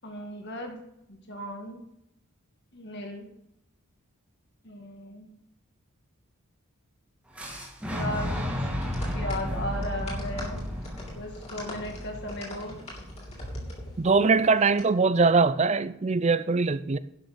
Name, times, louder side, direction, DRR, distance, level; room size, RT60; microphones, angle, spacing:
voice 1, 0.0-0.8 1.1-1.8 2.7-3.3 4.6-5.3 7.9-10.7 11.2-12.8, left 1 dB, 50° left, 2.0 m, -36 dB
Boom, 7.3-13.2, equal, 5° right, 2.0 m, -33 dB
sound 1, 8.8-14.8, left 1 dB, 30° left, 3.0 m, -43 dB
voice 2, 14.0-17.0, right 4 dB, 30° right, 0.4 m, -22 dB
11.5 x 6.4 x 7.0 m
head